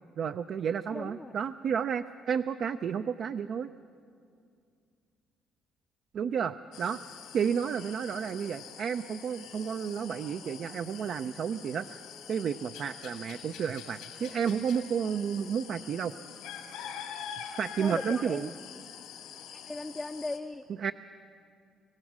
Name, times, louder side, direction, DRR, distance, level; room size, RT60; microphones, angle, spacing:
voice 1, 0.2-3.7 6.1-7.0 7.3-12.0 12.3-16.1 17.6-18.5 20.8-20.9, right 7 dB, 60° right, 8 dB, 0.5 m, -31 dB
voice 2, 0.9-1.3 6.2-6.5 17.8-18.5 19.5-20.6, left 2 dB, 20° left, 5 dB, 0.5 m, -38 dB
sound 1, 6.7-20.4, left 8 dB, 90° left, 2.5 m, -45 dB
25.5 x 16.5 x 6.2 m, 2.3 s
supercardioid pair, 80°, 0 cm